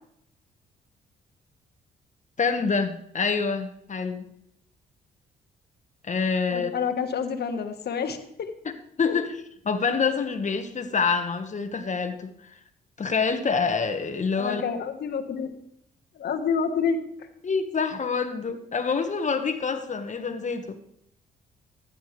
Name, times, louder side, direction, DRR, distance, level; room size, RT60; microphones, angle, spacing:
voice 1, 2.4-4.2 6.0-6.7 9.0-9.4 9.6-12.6 13.0-14.6 17.4-20.8, left 5 dB, 40° left, 8 dB, 1.6 m, -26 dB
voice 2, 6.5-8.5 9.0-9.2 14.4-15.6 16.2-17.0, left 6 dB, 60° left, 7 dB, 1.5 m, -28 dB
15.0 x 10.5 x 3.4 m, 0.73 s
supercardioid pair, 55°, 19 cm